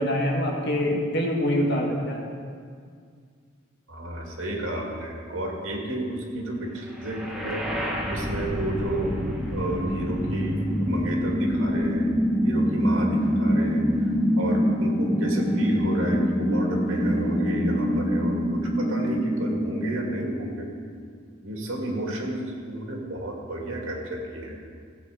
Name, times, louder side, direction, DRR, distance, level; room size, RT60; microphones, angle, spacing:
voice 1, 0.0-2.2, equal, 60° left, -1 dB, 1.9 m, -25 dB
voice 2, 3.9-7.7 8.0-9.1 9.5-12.1 12.4-20.7 21.4-24.6, right 1 dB, 80° right, 0 dB, 2.3 m, -32 dB
sound 1, 7.0-21.0, equal, 5° right, 1.3 m, -25 dB
16.0 x 8.2 x 5.0 m, 2.1 s
head